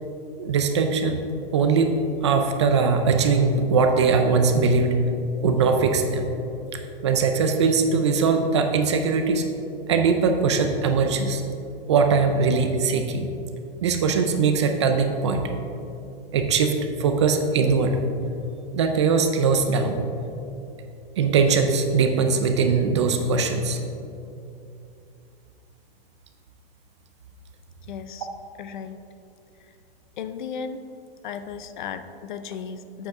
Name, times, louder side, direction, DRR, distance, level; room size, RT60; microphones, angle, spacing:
voice 1, 0.4-1.2 1.5-2.0 2.2-5.0 5.4-6.3 6.7-9.4 9.9-11.4 11.9-13.3 13.8-15.4 16.3-18.0 18.7-20.0 21.2-23.8, right 5 dB, 30° right, 5 dB, 0.4 m, -21 dB
voice 2, 27.9-28.3 28.6-29.0 29.6-29.7 30.2-30.8 31.2-33.1, left 6 dB, 55° left, 10 dB, 0.5 m, -35 dB
8.9 x 7.9 x 3.5 m, 2.7 s
supercardioid pair, 170°, 30 cm